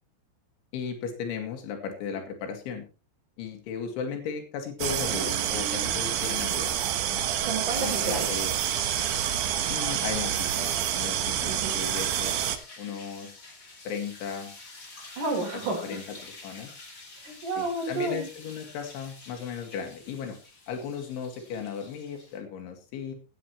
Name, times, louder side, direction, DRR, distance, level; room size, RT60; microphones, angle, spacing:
voice 1, 0.7-2.8 3.4-6.7 7.1-7.3 7.8-8.5 9.7-12.3 12.8-13.3 13.9-14.5 15.8-16.7 17.6-20.4 20.7-23.1, left 6 dB, 85° left, 5 dB, 4.5 m, -36 dB
sound 1, 4.8-12.6, right 10 dB, 75° right, 1.8 m, -28 dB
voice 2, 7.4-8.3 11.4-11.8 15.2-16.0 17.1-18.2, right 2 dB, 45° right, -3 dB, 4.7 m, -31 dB
sound 2, 7.7-22.4, left 3 dB, 25° left, 2.1 m, -47 dB
17.0 x 10.0 x 3.1 m, 0.31 s
omnidirectional pair, 5.3 m